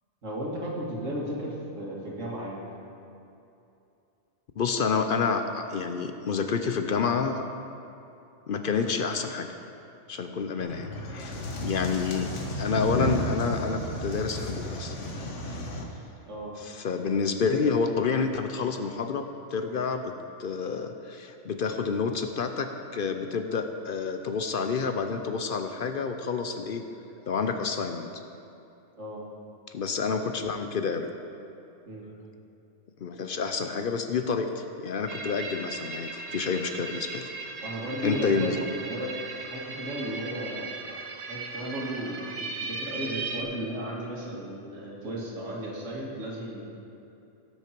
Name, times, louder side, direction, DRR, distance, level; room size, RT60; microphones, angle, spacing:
voice 1, 0.2-2.7 16.2-16.5 29.0-29.2 31.9-32.0 35.3-35.4 37.6-39.1 39.5-40.7 41.3-46.6, equal, 90° right, -4 dB, 2.5 m, -35 dB
voice 2, 4.6-7.4 8.5-9.5 10.1-12.3 12.6-14.9 16.6-19.2 19.5-20.0 20.4-26.9 27.3-28.1 29.7-31.1 33.0-37.5 38.0-38.7, left 5 dB, 55° left, 6 dB, 0.7 m, -29 dB
sound 1, 10.6-15.8, equal, 80° left, 1.5 m, -33 dB
sound 2, 35.1-43.4, right 4 dB, 50° right, 0.9 m, -37 dB
17.5 x 6.5 x 4.5 m, 2.8 s
omnidirectional pair, 1.3 m